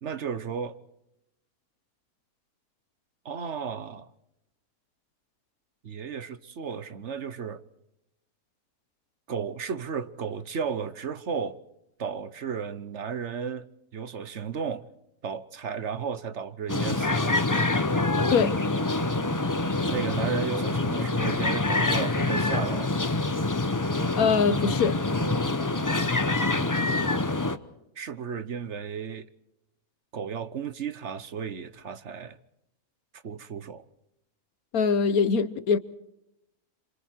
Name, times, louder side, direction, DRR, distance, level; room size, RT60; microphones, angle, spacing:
voice 1, 0.0-0.8 3.2-4.1 5.8-7.6 9.3-11.6 12.0-13.7 13.9-14.9 15.2-17.4 19.9-22.9 26.5-27.2 28.0-29.3 30.1-32.4 33.2-33.8, right 6 dB, 55° right, 1.3 m, -34 dB
sound 1, 16.7-27.6, left 2 dB, 15° left, 0.7 m, -26 dB
voice 2, 24.2-25.0 34.7-35.8, left 5 dB, 85° left, 1.6 m, -23 dB
28.0 x 26.5 x 4.5 m
omnidirectional pair, 1.5 m